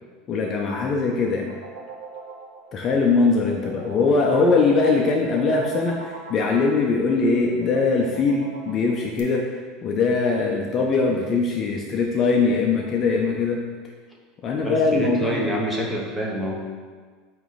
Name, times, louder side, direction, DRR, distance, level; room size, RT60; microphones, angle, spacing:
voice 1, 0.3-1.5 2.7-9.4 9.8-13.6 14.4-15.4, left 4 dB, 30° left, 0 dB, 0.5 m, -21 dB
sound 1, 0.7-9.2, right 3 dB, 90° right, 0.9 m, -40 dB
voice 2, 14.6-16.7, equal, 5° right, -2 dB, 0.9 m, -26 dB
8.8 x 3.1 x 4.0 m, 1.5 s
supercardioid pair, 160°, 0 cm